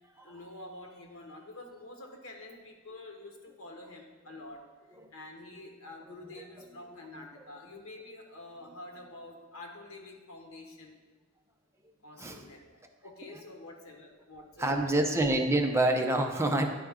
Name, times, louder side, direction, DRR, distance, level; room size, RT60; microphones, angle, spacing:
voice 1, 0.0-4.6 5.1-11.0 12.0-15.1, left 2 dB, 80° left, 2 dB, 1.2 m, -48 dB
voice 2, 6.1-6.4 12.2-12.5 13.3-13.4 14.6-16.7, right 1 dB, 10° right, 3 dB, 0.5 m, -27 dB
9.7 x 4.5 x 3.6 m, 1.3 s
head